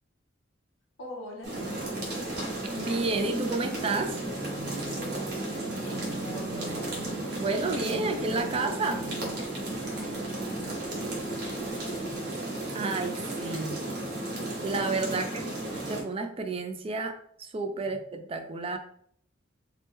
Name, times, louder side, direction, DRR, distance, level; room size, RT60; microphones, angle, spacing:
voice 1, 1.0-2.4 4.8-6.8 9.8-12.1 14.9-15.3 17.9-18.0, left 1 dB, 85° left, 1 dB, 0.7 m, -45 dB
sound 1, 1.4-12.2, right 1 dB, 25° left, 0.5 m, -49 dB
sound 2, 1.4-16.0, right 2 dB, 55° right, 1.0 m, -34 dB
voice 2, 2.7-4.2 7.4-9.1 12.7-13.8 14.6-15.4 15.9-18.8, right 3 dB, 30° right, 6 dB, 0.3 m, -31 dB
2.8 x 2.1 x 3.4 m, 0.63 s
head